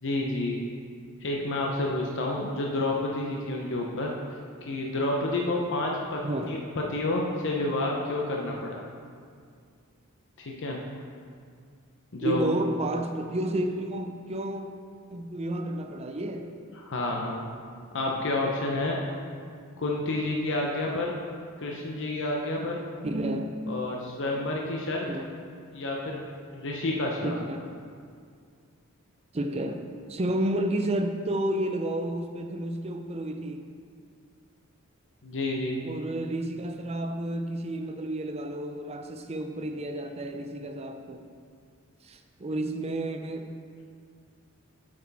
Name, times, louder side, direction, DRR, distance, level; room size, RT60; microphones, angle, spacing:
voice 1, 0.0-0.6 1.2-4.1 4.7-8.8 10.4-10.8 12.1-12.5 16.7-17.5 17.9-19.0 19.8-21.1 21.6-22.8 23.7-25.1 25.7-26.2 26.5-27.4 35.2-35.8, left 2 dB, 60° left, -1 dB, 0.7 m, -29 dB
voice 2, 12.2-14.7 15.1-16.5 23.0-23.5 25.1-25.2 27.2-27.6 29.3-29.8 30.1-33.6 35.8-41.2 42.0-43.5, right 1 dB, 30° right, 6 dB, 0.5 m, -31 dB
8.6 x 6.2 x 4.1 m, 2.2 s
head